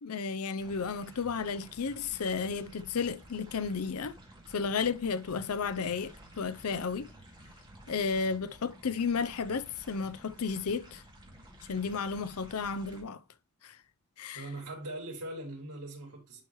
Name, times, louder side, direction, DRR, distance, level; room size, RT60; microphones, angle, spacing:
voice 1, 0.0-4.1 4.5-7.1 7.9-11.0 11.7-13.2 13.6-13.8 14.2-14.5, left 5 dB, 75° left, 0.6 m, -33 dB
sound 1, 0.6-13.0, right 1 dB, 20° right, 2.2 m, -53 dB
voice 2, 14.3-16.4, right 1 dB, 80° right, 4.1 m, -41 dB
11.0 x 4.6 x 3.1 m
head